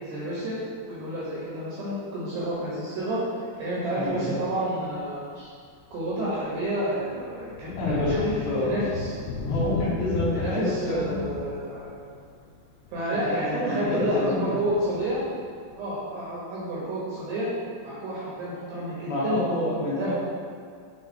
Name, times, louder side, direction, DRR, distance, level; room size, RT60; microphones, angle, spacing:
voice 1, 0.0-0.6 0.9-3.2 3.6-5.5 5.9-9.1 10.3-12.1 12.9-15.2 15.8-17.5 17.8-19.4 20.0-20.1, right 1 dB, 75° right, -8 dB, 2.6 m, -30 dB
voice 2, 4.0-4.3 7.8-8.9 9.5-11.3 13.1-14.4 19.0-20.1, left 1 dB, 65° left, -10 dB, 3.3 m, -28 dB
Thunder, 4.3-4.4 4.9-5.0 5.5-16.0, left 4 dB, 90° left, 2.5 m, -36 dB
7.9 x 3.4 x 4.3 m, 2.1 s
omnidirectional pair, 5.9 m